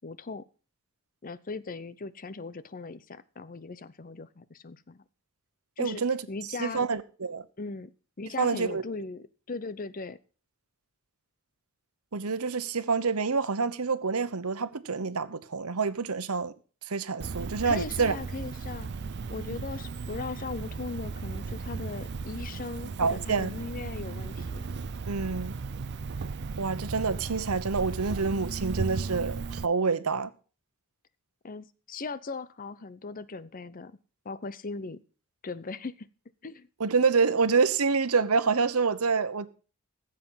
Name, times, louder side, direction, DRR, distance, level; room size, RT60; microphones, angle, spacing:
voice 1, 0.0-0.4 1.2-5.0 5.8-6.8 7.6-7.9 8.2-10.2 17.7-18.9 19.3-24.6 31.4-34.0 34.2-35.0 35.4-36.1 36.4-36.7, left 4 dB, 40° left, 0.7 m, -38 dB
voice 2, 5.8-6.2 6.6-7.4 8.4-8.8 12.1-16.5 16.9-18.1 23.0-23.5 25.1-25.6 26.6-30.3 36.8-39.5, right 4 dB, 85° right, 1.0 m, -27 dB
Cricket, 17.2-29.6, right 4 dB, 50° right, 0.5 m, -36 dB
15.0 x 7.6 x 5.6 m
head